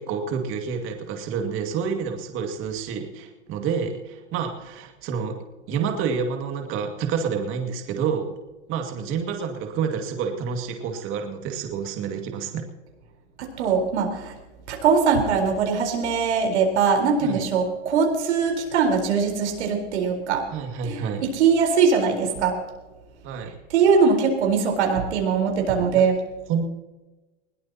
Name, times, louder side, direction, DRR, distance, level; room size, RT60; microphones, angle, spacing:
voice 1, 0.0-5.4 5.7-8.4 8.7-12.7 17.2-17.4 20.5-21.2 23.2-23.6 25.9-26.0 26.5-26.6, right 6 dB, 35° right, 4 dB, 2.3 m, -28 dB
voice 2, 13.4-14.3 14.7-20.5 20.8-22.6 23.7-26.2, right 5 dB, 70° right, 3 dB, 4.3 m, -21 dB
21.5 x 17.5 x 2.9 m, 1.1 s
hypercardioid pair, 130°, 35 cm